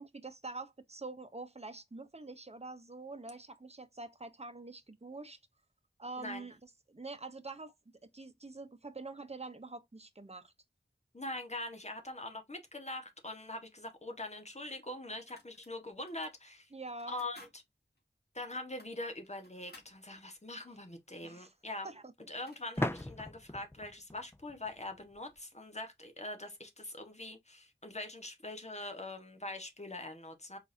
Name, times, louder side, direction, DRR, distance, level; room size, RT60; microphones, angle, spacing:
voice 1, 0.0-5.4 6.0-7.7 8.0-10.5 16.7-17.2 21.2-21.5 21.8-22.3, right 3 dB, 35° right, 0.9 m, -46 dB
voice 2, 6.2-6.5 11.1-16.7 17.1-17.6 18.3-21.9 22.3-30.6, left 2 dB, 35° left, 1.5 m, -43 dB
sound 1, 13.9-14.0 14.7-15.7 16.1-16.3 16.9-17.6 18.0-18.1 18.6-20.0 22.0-22.1 22.3-23.2, left 2 dB, 60° left, 2.6 m, -59 dB
sound 2, 19.8-19.9 22.8-25.4, left 1 dB, 15° left, 0.5 m, -39 dB
4.7 x 3.9 x 2.7 m
wide cardioid pair, 50°, 19 cm